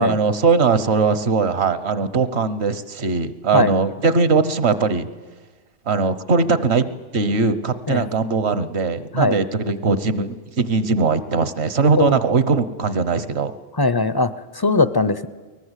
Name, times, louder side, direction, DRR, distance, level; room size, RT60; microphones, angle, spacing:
voice 1, 0.0-5.1 5.9-6.8 7.1-13.5, right 4 dB, 65° right, 14 dB, 1.3 m, -20 dB
voice 2, 13.8-15.3, left 3 dB, 25° left, 14 dB, 0.5 m, -19 dB
22.5 x 19.0 x 8.2 m, 1.3 s
omnidirectional pair, 1.2 m